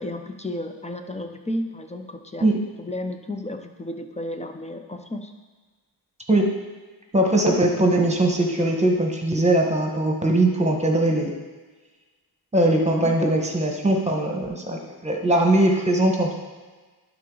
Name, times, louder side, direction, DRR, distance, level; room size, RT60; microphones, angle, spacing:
voice 1, 0.0-5.3 13.0-13.1, left 1 dB, 15° left, 6 dB, 0.7 m, -33 dB
voice 2, 7.1-11.3 12.5-16.4, right 1 dB, 15° right, 1 dB, 1.4 m, -20 dB
11.5 x 3.9 x 3.9 m, 1.3 s
cardioid pair, 70°, 47 cm